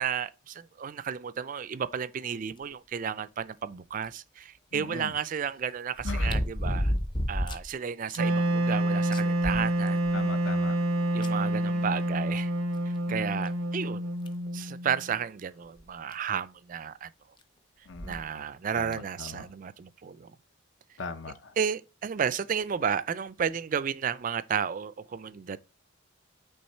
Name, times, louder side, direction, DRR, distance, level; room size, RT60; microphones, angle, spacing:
voice 1, 0.0-6.9 7.3-10.0 11.1-12.5 12.9-14.1 14.5-17.1 18.0-20.3 21.6-25.6, right 7 dB, 40° right, 0.3 m, -32 dB
sound 1, 4.0-4.1 6.0-7.7 8.1-8.2 8.7-8.8 9.1-10.2 11.2-11.3 12.8-12.9 13.4-13.5 14.3-14.5 15.8-15.9 16.1-16.2 17.9-18.2 18.9-19.0, equal, 25° left, 0.6 m, -30 dB
voice 2, 4.7-5.1 6.0-6.4 10.1-10.8 13.1-13.2 17.9-18.2 18.7-19.5 21.0-21.6, left 4 dB, 65° left, 0.7 m, -39 dB
Wind instrument woodwind instrument, 8.2-15.1, right 1 dB, 90° right, 0.6 m, -28 dB
8.7 x 3.5 x 4.3 m
head